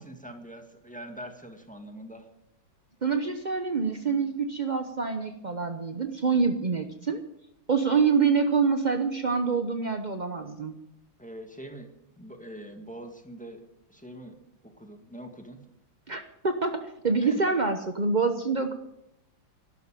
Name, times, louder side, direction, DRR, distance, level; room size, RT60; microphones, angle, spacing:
voice 1, 0.0-2.3 11.2-11.9 12.2-13.6 13.9-14.4 14.6-15.6 17.2-17.6, right 1 dB, 5° left, 5 dB, 1.6 m, -43 dB
voice 2, 3.0-7.2 7.7-10.8 16.1-18.7, right 5 dB, 60° right, 7 dB, 0.4 m, -26 dB
12.5 x 12.0 x 9.1 m, 0.85 s
omnidirectional pair, 2.3 m